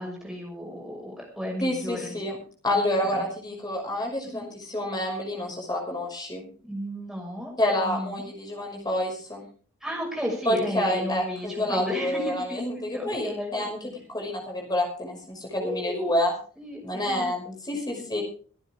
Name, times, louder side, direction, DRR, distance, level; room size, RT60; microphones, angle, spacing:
voice 1, 0.0-2.2 3.0-3.2 4.3-4.4 6.6-7.5 7.8-8.2 9.8-13.9 15.6-16.1 16.6-17.6 17.9-18.0, left 1 dB, ahead, -1 dB, 6.3 m, -34 dB
voice 2, 1.6-2.4 2.6-6.4 7.6-9.4 10.5-13.8 14.1-16.3 16.8-18.2, left 1 dB, 20° left, 1 dB, 5.8 m, -28 dB
25.0 x 9.8 x 3.6 m, 0.41 s
head